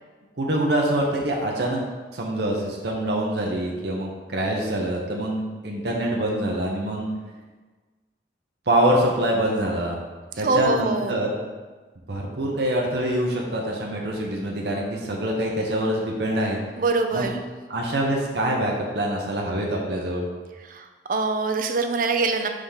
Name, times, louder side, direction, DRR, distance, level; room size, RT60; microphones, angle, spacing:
voice 1, 0.4-1.8 2.1-7.1 8.7-10.0 10.4-11.3 12.1-16.6 17.1-17.3 17.7-20.2, right 1 dB, 65° right, -1 dB, 0.9 m, -25 dB
voice 2, 10.4-11.2 16.8-17.4 20.7-22.5, right 3 dB, 50° right, 6 dB, 0.5 m, -24 dB
5.0 x 3.6 x 5.6 m, 1.3 s
head